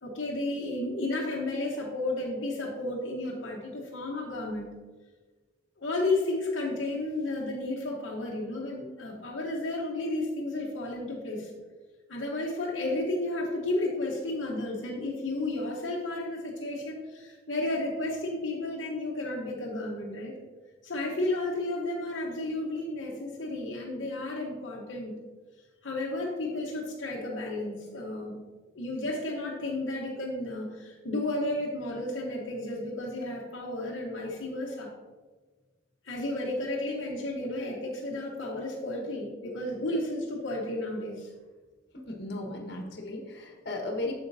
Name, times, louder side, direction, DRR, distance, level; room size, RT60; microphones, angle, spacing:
voice 1, 0.0-4.7 5.8-11.5 12.1-20.4 20.8-25.2 25.8-28.4 28.7-34.9 36.0-41.3 44.1-44.2, left 2 dB, 80° left, -2 dB, 1.0 m, -32 dB
voice 2, 41.9-44.1, left 2 dB, 60° left, 1 dB, 1.4 m, -36 dB
8.0 x 7.0 x 2.7 m, 1.3 s
head